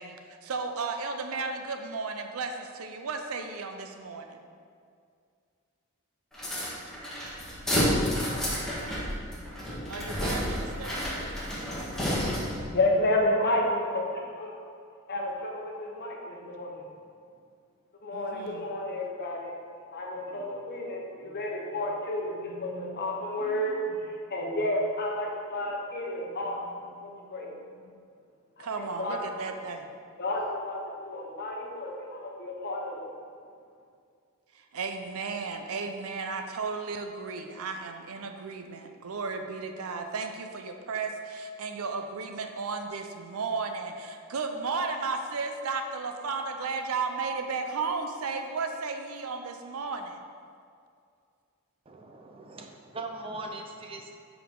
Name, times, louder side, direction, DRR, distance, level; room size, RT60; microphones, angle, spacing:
voice 1, 0.0-4.4 9.9-10.9 18.1-18.7 28.6-29.9 34.5-50.2, right 4 dB, 70° right, 6 dB, 0.5 m, -34 dB
sound 1, 6.3-12.7, equal, ahead, 1.4 m, -30 dB
voice 2, 12.4-14.6 15.1-16.8 18.0-19.5 19.9-27.5 28.6-29.2 30.2-33.0, left 1 dB, 45° left, -1 dB, 1.0 m, -31 dB
voice 3, 51.9-54.1, right 2 dB, 25° right, 3 dB, 0.5 m, -40 dB
7.1 x 4.7 x 3.8 m, 2.3 s
head